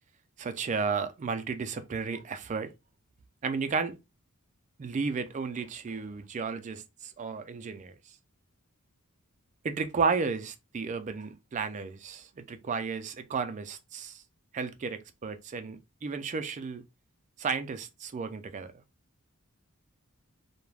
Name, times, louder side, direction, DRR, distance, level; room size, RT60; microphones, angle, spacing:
voice 1, 0.4-2.7 3.4-4.0 4.8-8.2 9.6-14.2 14.5-16.8 17.4-18.8, right 5 dB, 35° right, 0.3 m, -33 dB
2.3 x 2.1 x 3.2 m
head